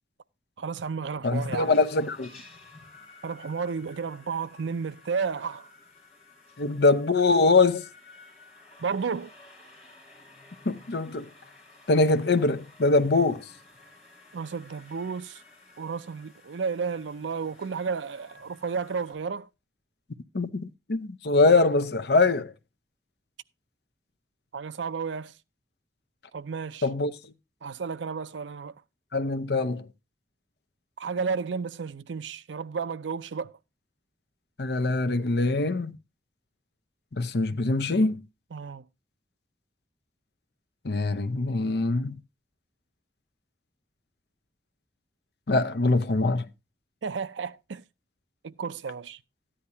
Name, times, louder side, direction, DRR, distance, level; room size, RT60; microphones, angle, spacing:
voice 1, 0.6-1.7 3.2-5.7 8.8-9.3 14.3-15.4 15.8-19.5 24.5-25.3 26.3-26.9 27.6-28.8 31.0-33.6 38.5-38.8 47.0-47.8 48.4-49.2, right 5 dB, 90° right, 0.5 m, -32 dB
voice 2, 1.2-2.3 6.6-7.8 10.7-11.3 11.9-13.4 20.3-22.5 26.8-27.1 29.1-29.8 34.6-35.9 37.1-38.2 40.8-42.2 45.5-46.4, left 3 dB, 65° left, 0.7 m, -23 dB
sound 1, 1.3-19.1, left 2 dB, 35° left, 5.1 m, -52 dB
13.5 x 10.0 x 2.7 m
head